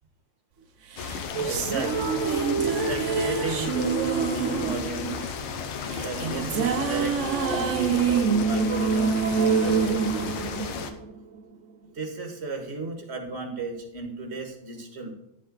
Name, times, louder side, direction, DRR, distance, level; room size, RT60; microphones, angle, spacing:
sound 1, 1.0-10.9, left 6 dB, 85° left, 1.8 m, -34 dB
sound 2, 1.0-11.4, right 6 dB, 70° right, 0.7 m, -26 dB
voice 1, 1.4-2.2 2.6-5.3 5.9-10.4 11.9-15.1, right 3 dB, 35° right, 2 dB, 1.8 m, -35 dB
11.5 x 7.8 x 4.0 m, 0.82 s
omnidirectional pair, 2.3 m